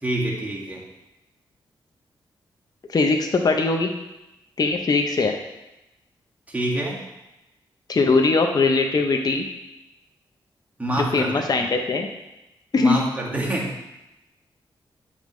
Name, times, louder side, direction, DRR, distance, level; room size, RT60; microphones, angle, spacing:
voice 1, 0.0-0.8 6.5-7.0 10.8-11.4 12.7-13.8, right 1 dB, 15° right, -3 dB, 1.9 m, -26 dB
voice 2, 2.9-3.9 4.6-5.3 7.9-9.5 11.1-12.1 12.7-12.9, left 3 dB, 45° left, 4 dB, 0.7 m, -20 dB
8.6 x 5.3 x 3.2 m, 0.96 s
cardioid pair, 70°, 9 cm